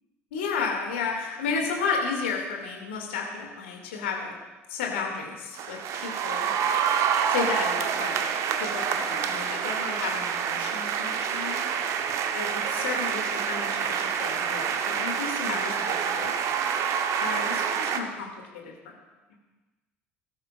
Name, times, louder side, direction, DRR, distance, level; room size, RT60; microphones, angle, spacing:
voice 1, 0.3-4.3 4.7-6.5 7.3-8.2 8.6-11.6 12.3-16.3 17.2-18.3 18.5-18.7, left 5 dB, 65° left, 1 dB, 2.3 m, -32 dB
sound 1, 5.5-18.0, right 7 dB, 50° right, 0.9 m, -27 dB
18.5 x 12.5 x 2.5 m, 1.2 s
figure-of-eight pair, 60°, 7 cm